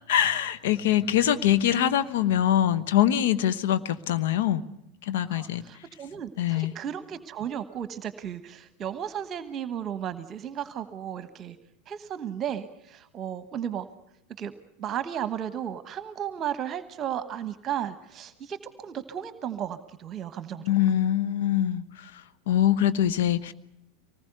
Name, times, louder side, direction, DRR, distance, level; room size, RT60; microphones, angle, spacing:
voice 1, 0.1-4.6 5.0-5.6 6.4-6.7 20.6-22.1 22.5-23.5, left 11 dB, 60° left, 12 dB, 1.1 m, -23 dB
voice 2, 5.2-11.6 11.9-13.9 14.4-14.5 14.8-20.7, right 9 dB, 35° right, 13 dB, 1.1 m, -34 dB
24.5 x 19.5 x 8.0 m, 0.82 s
figure-of-eight pair, 85°, 0 cm